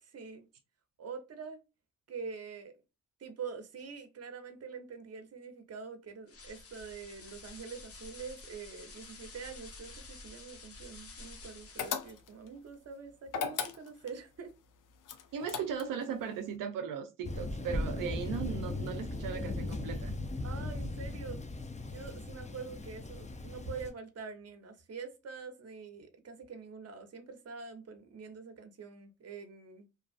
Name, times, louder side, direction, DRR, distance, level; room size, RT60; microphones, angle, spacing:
voice 1, 0.0-0.5 1.0-1.6 2.1-2.7 3.2-14.5 20.4-21.4 21.8-29.9, right 5 dB, 50° right, 0.8 m, -45 dB
sound 1, 6.3-12.2, left 3 dB, 45° left, 0.8 m, -50 dB
sound 2, 11.8-12.5 13.3-14.2 15.1-16.0, left 7 dB, 75° left, 0.5 m, -36 dB
voice 2, 15.3-20.1, right 7 dB, 90° right, 0.5 m, -37 dB
Thunder, 17.2-23.9, left 2 dB, 20° left, 0.5 m, -38 dB
2.6 x 2.3 x 2.4 m
cardioid pair, 60°, 32 cm